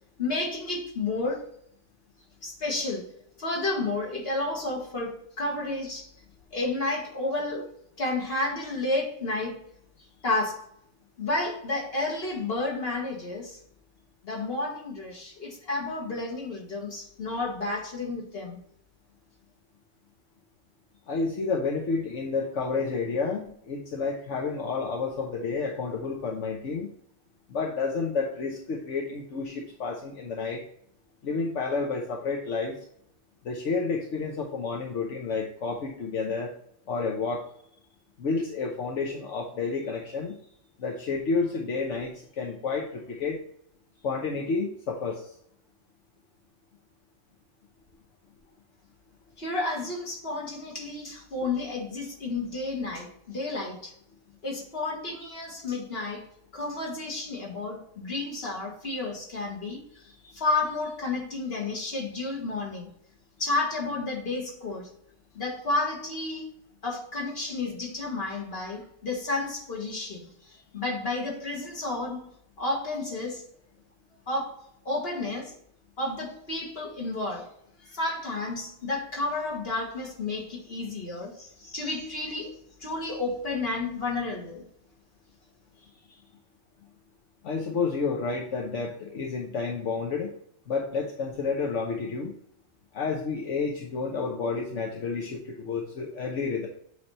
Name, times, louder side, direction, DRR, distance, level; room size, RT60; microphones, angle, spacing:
voice 1, 0.2-1.5 2.4-3.1 3.4-6.1 6.5-7.7 8.0-9.6 10.2-10.6 11.2-13.6 14.2-18.6 49.4-53.9 54.4-56.3 56.5-59.8 60.3-62.9 63.4-64.9 65.3-66.5 66.8-70.3 70.7-72.3 72.6-73.4 74.3-74.6 74.9-75.5 76.0-77.5 77.8-82.6 82.8-84.7, left 2 dB, 55° left, 2.1 m, -31 dB
voice 2, 21.1-26.9 27.5-30.6 31.2-32.8 33.4-36.5 36.9-37.5 38.2-40.4 40.8-43.4 44.0-45.3 60.2-60.3 85.8-86.2 87.4-90.3 90.7-92.3 92.9-96.7, left 4 dB, 75° left, 1.3 m, -30 dB
8.3 x 3.4 x 4.1 m
omnidirectional pair, 1.2 m